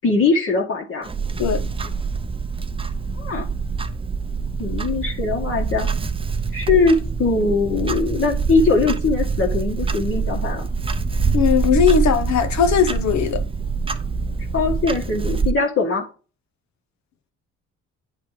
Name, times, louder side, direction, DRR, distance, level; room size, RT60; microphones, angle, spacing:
voice 1, 0.0-1.1 3.1-3.5 4.6-5.9 6.5-10.7 14.5-16.0, left 4 dB, 45° left, 1.6 m, -21 dB
Clock, 1.0-15.5, right 4 dB, 20° right, 0.6 m, -25 dB
voice 2, 11.3-13.4, left 7 dB, 65° left, 1.0 m, -18 dB
9.2 x 3.3 x 4.7 m
cardioid pair, 90°, 30 cm